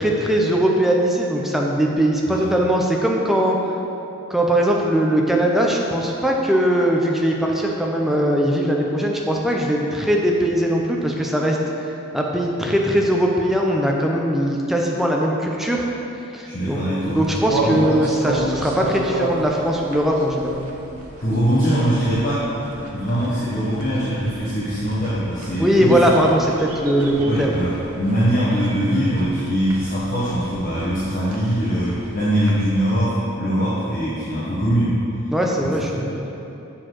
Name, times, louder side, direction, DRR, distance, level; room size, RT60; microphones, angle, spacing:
voice 1, 0.0-3.6 4.3-15.8 16.3-20.7 25.6-27.6 35.3-36.3, equal, ahead, -1 dB, 0.6 m, -20 dB
voice 2, 16.4-17.2 17.6-17.8 21.2-22.5 22.7-26.0 27.2-35.0, equal, 40° left, -9 dB, 1.1 m, -22 dB
sound 1, 17.0-33.0, right 1 dB, 90° right, 0.9 m, -33 dB
7.3 x 4.5 x 6.1 m, 2.9 s
head